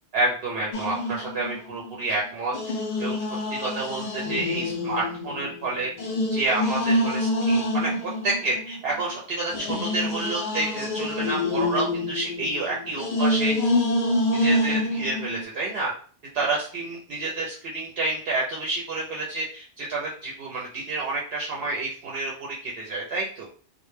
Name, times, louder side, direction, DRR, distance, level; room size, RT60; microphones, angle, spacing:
voice 1, 0.1-3.2 3.5-5.9 6.3-13.5 14.3-15.9 16.3-23.5, right 2 dB, 70° right, -3 dB, 0.7 m, -29 dB
sound 1, 0.7-2.0 2.5-9.0 9.5-15.4, left 1 dB, 55° left, 0.6 m, -27 dB
2.1 x 2.1 x 3.0 m, 0.43 s
omnidirectional pair, 1.1 m